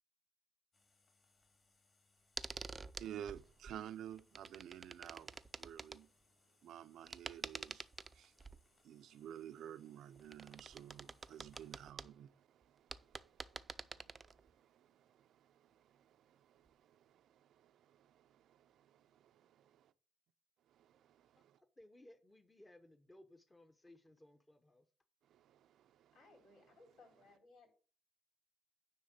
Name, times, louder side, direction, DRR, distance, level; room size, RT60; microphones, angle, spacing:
sound 1, 0.7-11.9, left 3 dB, 35° left, 2.6 m, -75 dB
sound 2, 2.4-3.8 4.1-6.0 7.1-8.6 10.2-12.1 12.6-12.7 12.9-14.5 16.7-16.8, right 3 dB, 25° right, 0.4 m, -48 dB
voice 1, 3.0-6.1 6.6-7.9 8.1-8.3 8.8-18.8 19.7-19.9 20.7-21.6 25.3-26.1, right 10 dB, 75° right, 0.5 m, -53 dB
voice 2, 21.8-24.9, left 1 dB, 15° left, 0.9 m, -61 dB
voice 3, 26.1-27.7, left 3 dB, 80° left, 3.8 m, -63 dB
9.6 x 3.6 x 6.5 m
cardioid pair, 110°, 0 cm